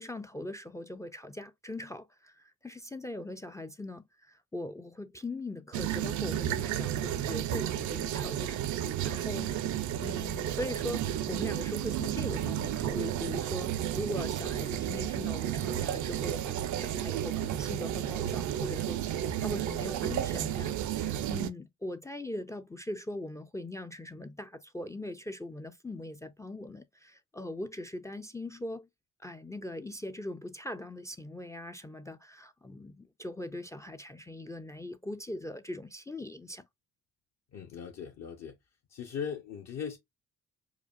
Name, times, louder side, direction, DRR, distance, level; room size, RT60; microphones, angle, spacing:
voice 1, 0.0-8.6 9.0-9.5 10.0-19.0 19.4-28.9 29.2-36.7, left 1 dB, 10° left, 0.3 m, -40 dB
sound 1, 5.7-21.5, right 11 dB, 75° right, 0.5 m, -32 dB
voice 2, 37.5-38.6 38.9-40.0, left 7 dB, 60° left, 0.9 m, -39 dB
5.0 x 2.3 x 2.4 m
cardioid pair, 90°, 30 cm